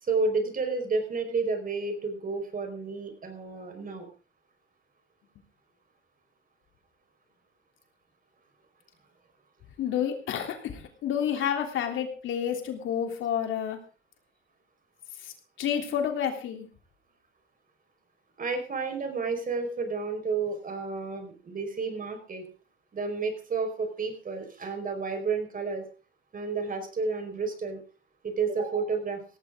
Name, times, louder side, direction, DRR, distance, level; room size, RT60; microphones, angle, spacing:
voice 1, 0.0-4.1 18.4-22.5 22.9-25.9 26.3-27.8 28.2-29.2, right 4 dB, 45° right, 6 dB, 4.9 m, -31 dB
voice 2, 9.8-13.8 15.2-15.3 15.6-16.7, left 9 dB, 85° left, 5 dB, 3.2 m, -29 dB
17.5 x 14.5 x 3.7 m, 0.36 s
cardioid pair, 90°, 20 cm